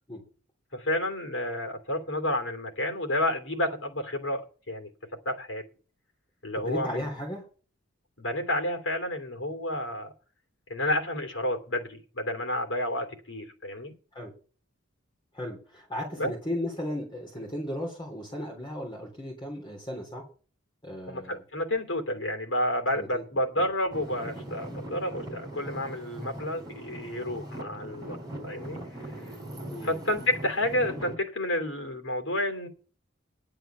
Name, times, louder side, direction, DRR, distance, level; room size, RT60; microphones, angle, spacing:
voice 1, 0.7-5.7 6.4-7.1 8.2-10.1 10.7-13.9 16.2-16.3 21.1-28.2 28.4-29.4 29.8-32.7, left 1 dB, 70° left, 2.8 m, -30 dB
voice 2, 6.6-7.5 14.1-14.3 15.3-20.2 20.8-21.4 22.9-23.2 23.6-23.7 29.7-30.0, left 1 dB, 25° left, 3.3 m, -35 dB
Traffic noise roadway noise / Engine, 23.9-31.2, right 1 dB, 20° right, 4.3 m, -40 dB
10.5 x 7.6 x 6.8 m
head